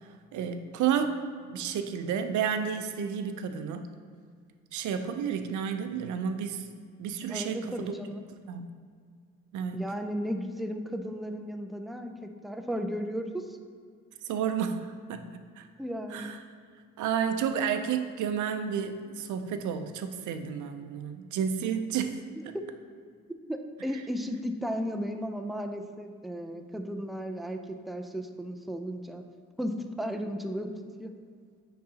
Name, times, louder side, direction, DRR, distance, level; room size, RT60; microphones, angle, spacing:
voice 1, 0.3-1.2 1.4-3.9 4.7-6.7 7.0-8.0 8.5-8.7 9.5-9.8 14.3-15.2 15.6-15.7 16.1-16.4 17.0-22.2 22.4-22.5, right 7 dB, 75° right, 8 dB, 0.6 m, -31 dB
voice 2, 7.3-8.3 9.7-13.5 15.8-16.4 21.6-21.8 22.3-22.6 23.5-27.6 27.9-29.2 29.6-30.7 31.0-31.1, equal, ahead, 5 dB, 0.4 m, -35 dB
9.3 x 3.9 x 2.8 m, 2.1 s
cardioid pair, 90°, 30 cm